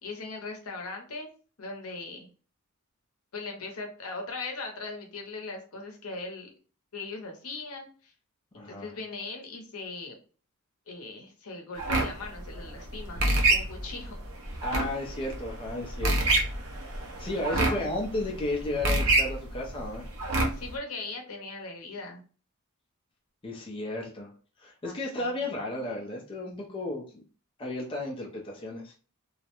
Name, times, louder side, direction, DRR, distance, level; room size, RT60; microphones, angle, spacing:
voice 1, 0.0-1.3 1.6-2.3 3.3-6.5 6.9-8.1 8.6-10.2 10.9-14.2 17.5-17.9 20.5-22.2 24.8-25.4, left 3 dB, 70° left, 2 dB, 0.7 m, -39 dB
voice 2, 8.5-8.9 14.6-16.3 17.2-20.0 23.4-24.3 24.6-27.2 27.6-28.9, left 2 dB, 25° left, -2 dB, 0.4 m, -33 dB
sound 1, 11.8-20.8, right 2 dB, 65° right, 0.6 m, -28 dB
2.3 x 2.1 x 2.8 m, 0.38 s
head